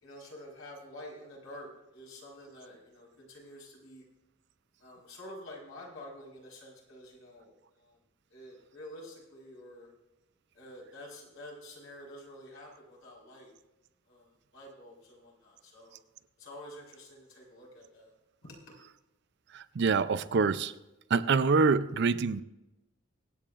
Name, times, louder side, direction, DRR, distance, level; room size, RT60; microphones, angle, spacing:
voice 1, 0.0-4.0 4.8-8.0 8.3-9.9 10.5-13.5 14.1-16.0 16.4-18.1 18.4-18.7, left 1 dB, 80° left, -4 dB, 4.6 m, -49 dB
voice 2, 19.5-20.7 21.1-22.4, right 4 dB, 55° right, 14 dB, 0.5 m, -26 dB
24.5 x 8.8 x 2.5 m, 0.98 s
head